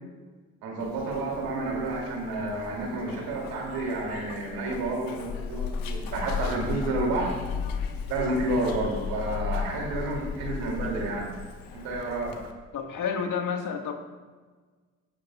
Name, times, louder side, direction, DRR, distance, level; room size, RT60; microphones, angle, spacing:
voice 1, 0.6-7.3 8.1-11.3 11.7-12.4, right 2 dB, 85° right, -1 dB, 2.8 m, -30 dB
Zipper (clothing), 0.8-12.5, left 6 dB, 75° left, 1.2 m, -36 dB
voice 2, 12.7-13.9, left 6 dB, 60° left, 3 dB, 1.7 m, -30 dB
17.0 x 10.0 x 2.4 m, 1.4 s
supercardioid pair, 55°, 35 cm